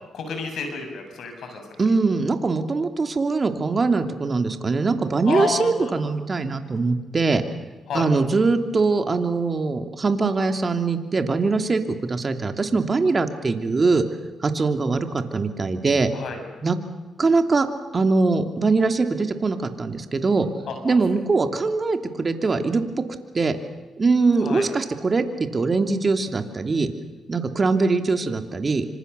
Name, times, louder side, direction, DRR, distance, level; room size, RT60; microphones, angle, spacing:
voice 1, 0.1-1.6 5.3-5.9 7.9-8.1 16.1-16.4 20.7-21.0 24.4-24.7, left 5 dB, 75° left, 5 dB, 7.1 m, -30 dB
voice 2, 1.8-7.4 7.9-14.0 14.4-16.1 16.6-16.8 17.2-17.7 17.9-20.5 20.8-22.8 23.3-23.6 24.0-26.9 27.3-28.9, right 3 dB, 40° right, 6 dB, 2.9 m, -22 dB
26.5 x 25.5 x 6.9 m, 1.2 s
cardioid pair, 65°, 0 cm